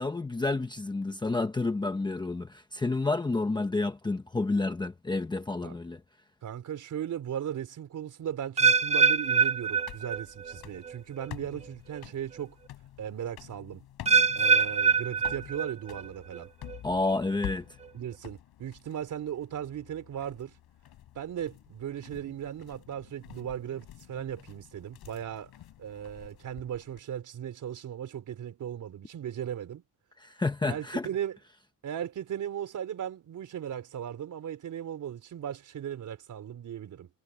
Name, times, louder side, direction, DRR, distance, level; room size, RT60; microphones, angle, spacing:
voice 1, 0.0-6.0 16.8-17.6 30.2-31.1, left 3 dB, 10° left, 0.9 m, -30 dB
voice 2, 6.4-12.6 13.0-13.9 14.3-16.5 17.9-20.5 21.1-25.5 25.8-29.8 30.6-31.4 31.8-37.1, right 9 dB, 50° right, 4.2 m, -37 dB
sound 1, 8.6-27.0, left 12 dB, 65° left, 6.0 m, -49 dB
sound 2, 8.6-10.6 10.9-11.3 11.9-12.0 14.1-16.0 16.3-16.8 17.4-17.5, right 5 dB, 15° right, 0.4 m, -24 dB
cardioid pair, 180°, 40 cm